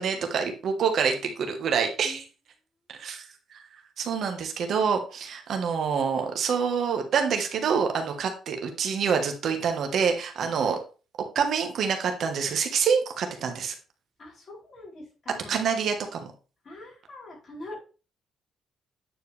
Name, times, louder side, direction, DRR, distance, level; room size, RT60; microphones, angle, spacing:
voice 1, 0.0-2.2 3.0-3.3 4.0-10.8 11.3-13.7 15.5-16.3, right 6 dB, 65° right, 5 dB, 1.4 m, -26 dB
voice 2, 14.2-15.6 16.6-17.8, left 2 dB, 45° left, -3 dB, 4.0 m, -44 dB
9.1 x 4.6 x 3.4 m, 0.35 s
cardioid pair, 90°, 0 cm